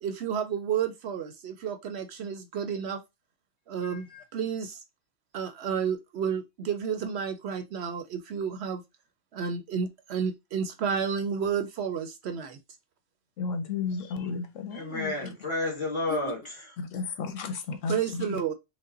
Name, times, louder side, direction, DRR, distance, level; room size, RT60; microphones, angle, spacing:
voice 1, 0.0-3.0 3.7-4.8 5.3-8.8 9.3-12.6 17.9-18.5, right 7 dB, 65° right, 0.8 m, -31 dB
voice 2, 3.8-4.2 13.4-15.1 16.9-17.9, left 5 dB, 80° left, 1.1 m, -33 dB
voice 3, 14.7-16.8, left 2 dB, 25° left, 1.7 m, -31 dB
5.2 x 2.1 x 3.7 m
omnidirectional pair, 1.3 m